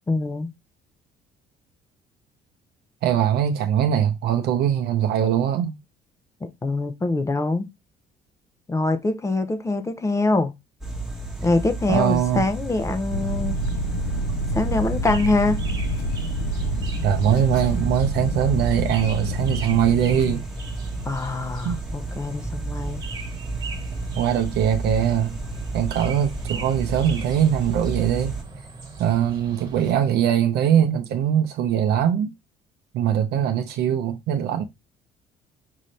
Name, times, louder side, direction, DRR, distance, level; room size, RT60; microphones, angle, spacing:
voice 1, 0.1-0.5 6.4-7.7 8.7-10.5 11.4-13.6 14.5-15.6 21.0-23.1, left 2 dB, 15° left, 0.6 m, -24 dB
voice 2, 3.0-5.8 11.9-12.4 17.0-20.4 21.6-21.8 24.2-25.4 25.7-28.4 29.0-32.3 32.9-34.6, right 9 dB, 75° right, 0.6 m, -21 dB
sound 1, 10.8-28.4, right 2 dB, 5° right, 1.1 m, -32 dB
sound 2, 13.1-20.3, equal, 80° left, 0.7 m, -28 dB
sound 3, 13.6-29.9, right 4 dB, 25° right, 1.6 m, -40 dB
5.5 x 2.6 x 3.1 m
cardioid pair, 110°, 17 cm